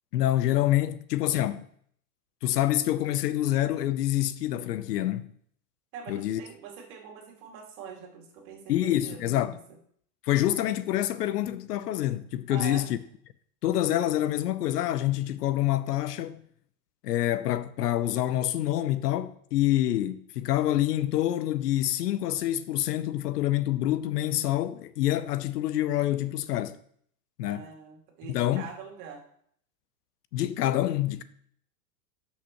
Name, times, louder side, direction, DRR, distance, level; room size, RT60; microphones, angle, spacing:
voice 1, 0.1-1.7 2.4-5.3 6.1-6.4 8.7-9.6 10.2-13.0 13.6-16.4 17.0-26.8 27.4-27.6 28.3-28.7 30.3-31.2, left 13 dB, 90° left, 0.7 m, -27 dB
voice 2, 5.9-9.6 12.5-12.9 27.4-29.2, right 6 dB, 50° right, 2.3 m, -43 dB
12.0 x 5.8 x 3.0 m
supercardioid pair, 140°, 46 cm